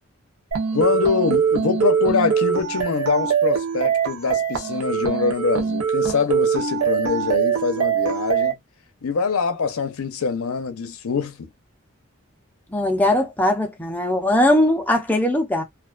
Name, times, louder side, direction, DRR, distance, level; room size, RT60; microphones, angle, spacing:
sound 1, 0.5-8.5, right 7 dB, 85° right, 0.7 m, -22 dB
voice 1, 0.7-8.6 9.0-11.5, left 5 dB, 85° left, 0.5 m, -24 dB
voice 2, 12.7-15.6, left 1 dB, 10° left, 0.5 m, -20 dB
2.4 x 2.2 x 2.3 m
head